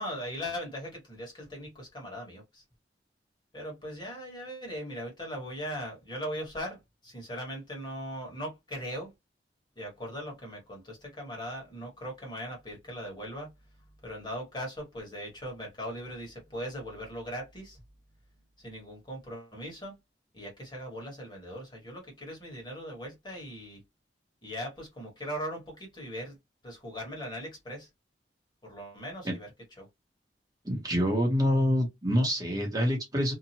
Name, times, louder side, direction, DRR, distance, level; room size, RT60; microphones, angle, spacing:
voice 1, 0.0-2.6 3.5-9.1 9.7-13.5 14.0-17.8 18.6-20.0 20.3-23.8 24.4-26.4 26.6-27.9 28.6-29.5 29.8-29.9, equal, 25° left, 1.5 m, -39 dB
voice 2, 30.6-33.3, equal, 20° right, 1.0 m, -26 dB
2.8 x 2.4 x 2.8 m
head